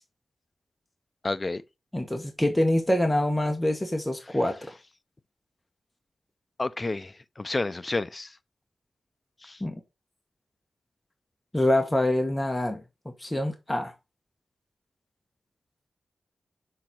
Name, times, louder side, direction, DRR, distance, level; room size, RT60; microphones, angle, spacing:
voice 1, 1.2-1.6 6.6-8.4 9.4-9.6, left 2 dB, 30° left, 0.5 m, -30 dB
voice 2, 1.9-4.6 9.6-9.8 11.5-13.9, left 1 dB, 10° left, 1.1 m, -25 dB
6.5 x 3.9 x 5.8 m
wide cardioid pair, 120°, 0 cm